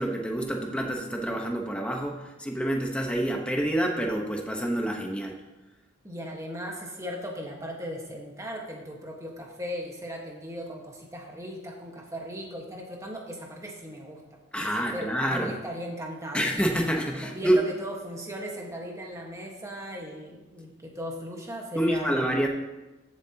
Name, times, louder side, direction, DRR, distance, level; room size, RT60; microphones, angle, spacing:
voice 1, 0.0-5.4 14.5-15.5 16.3-17.6 21.7-22.5, right 1 dB, 5° left, 1 dB, 1.1 m, -27 dB
voice 2, 6.0-14.2 14.6-16.5 17.1-22.2, equal, 15° right, 0 dB, 1.5 m, -37 dB
14.5 x 7.5 x 2.9 m, 1.1 s
head